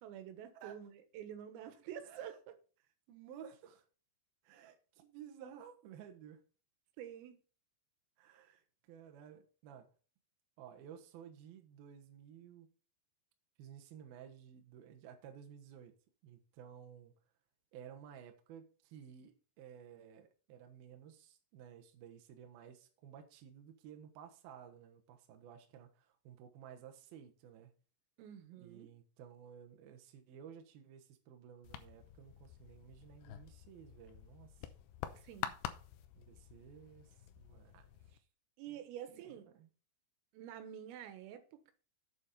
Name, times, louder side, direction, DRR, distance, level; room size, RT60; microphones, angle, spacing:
voice 1, 0.0-2.5 7.0-7.4 28.2-28.9 35.1-35.5 38.6-39.5 40.3-41.7, right 10 dB, 85° right, 3.8 m, -48 dB
voice 2, 2.0-2.4 3.1-3.8 4.4-6.4 8.2-9.9 10.6-12.7 13.6-15.9 16.2-17.1 17.7-27.7 28.6-34.7 36.2-38.2 38.7-39.7, right 8 dB, 70° right, 2.5 m, -55 dB
sound 1, 31.6-38.2, left 11 dB, 80° left, 2.4 m, -48 dB
8.5 x 7.2 x 5.3 m
omnidirectional pair, 5.9 m